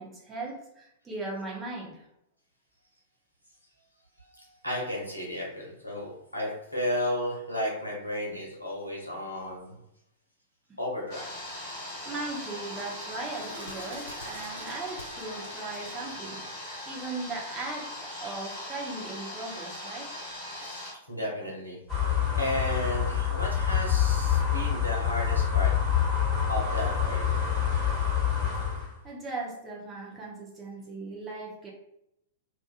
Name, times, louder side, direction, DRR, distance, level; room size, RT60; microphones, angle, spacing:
voice 1, 0.0-2.1 12.0-16.4 16.9-20.1 29.0-31.7, right 3 dB, 20° right, -2 dB, 0.7 m, -38 dB
voice 2, 4.2-9.8 10.8-11.3 20.5-21.8 22.4-25.7 26.5-27.4, left 1 dB, 90° left, -3 dB, 0.8 m, -33 dB
sound 1, 11.1-20.9, left 1 dB, 40° left, 1.1 m, -40 dB
Bird, 11.3-16.6, equal, 75° right, 0.9 m, -47 dB
sound 2, 21.9-28.9, left 8 dB, 20° left, 1.4 m, -26 dB
2.5 x 2.4 x 2.4 m, 0.81 s
figure-of-eight pair, 100°, 0 cm